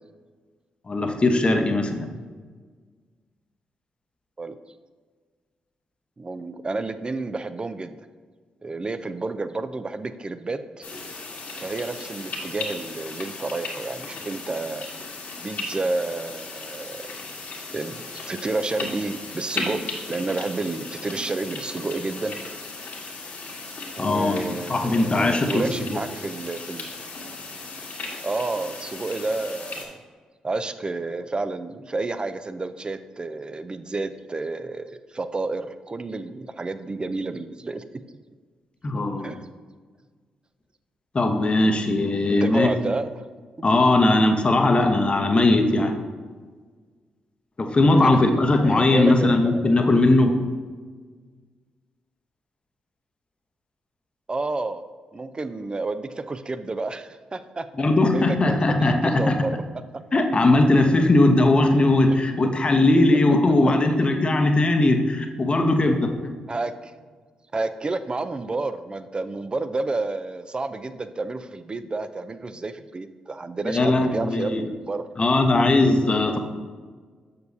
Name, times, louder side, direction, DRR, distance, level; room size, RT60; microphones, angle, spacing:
voice 1, 0.9-2.1 24.0-24.4 24.7-26.0 38.8-39.3 41.1-42.7 43.6-46.0 47.6-50.4 57.8-59.4 60.1-66.3 73.6-74.7 75.2-76.4, left 2 dB, 35° left, 5 dB, 0.9 m, -19 dB
voice 2, 6.2-8.0 8.6-10.9 11.6-14.9 15.4-17.0 17.7-22.4 24.0-26.9 28.2-30.0 30.4-38.2 39.2-39.5 42.3-43.3 48.0-49.8 54.3-54.8 55.1-57.7 58.0-59.6 66.5-66.9 67.5-75.1, right 3 dB, 30° right, 11 dB, 0.5 m, -30 dB
sound 1, 10.8-29.9, left 3 dB, 60° left, 1.5 m, -36 dB
6.7 x 6.7 x 2.7 m, 1.5 s
hypercardioid pair, 40°, 3 cm